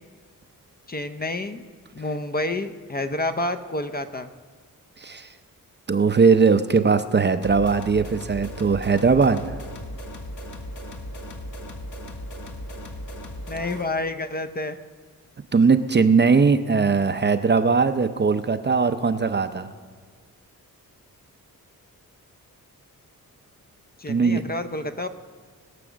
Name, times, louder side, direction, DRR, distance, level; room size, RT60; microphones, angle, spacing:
voice 1, 0.9-1.6 1.9-4.3 13.5-14.8 24.0-25.1, left 2 dB, 25° left, 10 dB, 0.6 m, -29 dB
voice 2, 5.0-5.3 5.9-9.6 15.5-19.7 24.1-24.5, right 5 dB, 30° right, 10 dB, 0.6 m, -20 dB
sound 1, 7.4-13.9, equal, 55° left, 1.4 m, -37 dB
20.5 x 6.9 x 6.2 m, 1.6 s
wide cardioid pair, 95°, 35 cm